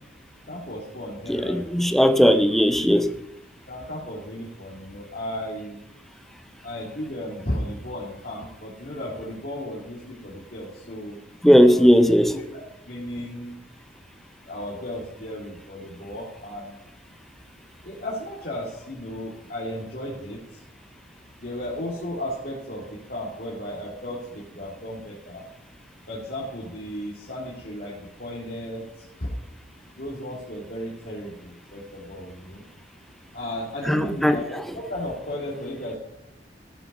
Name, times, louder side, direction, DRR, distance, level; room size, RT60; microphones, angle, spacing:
voice 1, 0.5-1.9 3.7-5.8 6.6-11.2 11.6-11.9 12.3-13.6 14.5-16.7 17.8-20.6 21.4-25.5 26.1-29.3 29.9-32.6 33.3-36.0, left 1 dB, 55° left, 2.2 m, -35 dB
voice 2, 1.3-3.1 11.4-12.3 33.9-34.4, equal, ahead, 0.5 m, -17 dB
14.0 x 5.6 x 5.3 m
head